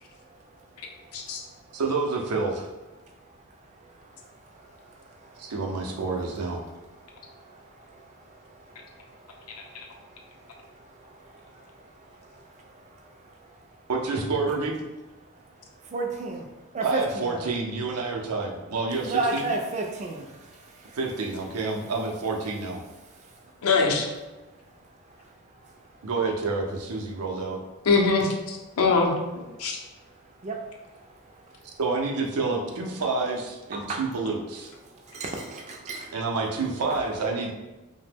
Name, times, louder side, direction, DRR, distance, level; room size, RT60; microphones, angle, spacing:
voice 1, 1.7-2.7 5.4-6.6 13.9-14.8 16.8-19.5 20.9-22.8 26.0-27.6 31.8-34.7 36.1-37.5, right 3 dB, 90° right, 1 dB, 0.5 m, -28 dB
voice 2, 15.9-16.4 16.7-17.5 19.1-20.2 30.4-30.6 33.7-34.0 35.1-36.1, right 3 dB, 30° right, 2 dB, 0.3 m, -30 dB
voice 3, 23.6-24.1 27.9-29.1 29.6-29.8, left 4 dB, 75° left, 1 dB, 0.5 m, -22 dB
2.8 x 2.1 x 3.4 m, 1.1 s
head